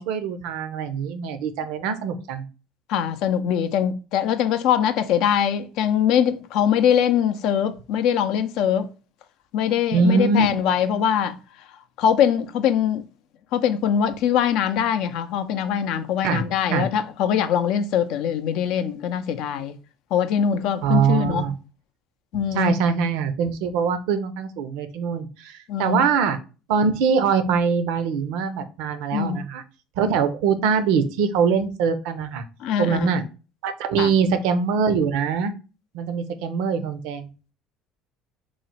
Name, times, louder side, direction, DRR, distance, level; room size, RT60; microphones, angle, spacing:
voice 1, 0.0-2.4 9.9-10.5 16.2-16.4 16.7-16.9 20.8-21.5 22.5-26.4 26.7-29.6 30.0-32.4 32.8-33.2 33.6-35.5 35.9-37.3, right 6 dB, 80° right, 0.5 m, -23 dB
voice 2, 2.9-8.9 9.5-11.4 12.0-13.0 13.5-19.7 20.1-21.4 22.3-22.7 25.7-26.0 29.1-29.4 30.0-30.1 32.6-33.1 34.0-34.1, left 8 dB, 70° left, 0.4 m, -22 dB
3.1 x 2.0 x 4.0 m
supercardioid pair, 85°, 0 cm